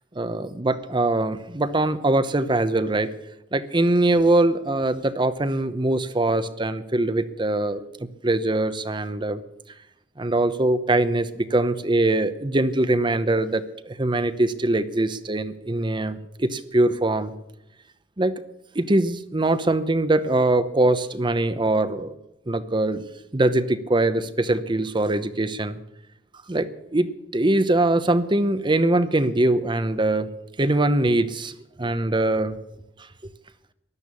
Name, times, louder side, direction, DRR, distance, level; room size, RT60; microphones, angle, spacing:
voice 1, 0.2-3.1 3.5-7.8 8.2-9.4 10.2-17.3 18.2-18.3 18.7-22.1 22.5-23.0 23.3-25.8 26.5-30.3 30.6-32.6, right 2 dB, 25° right, 12 dB, 0.8 m, -22 dB
14.0 x 12.0 x 8.4 m, 0.87 s
head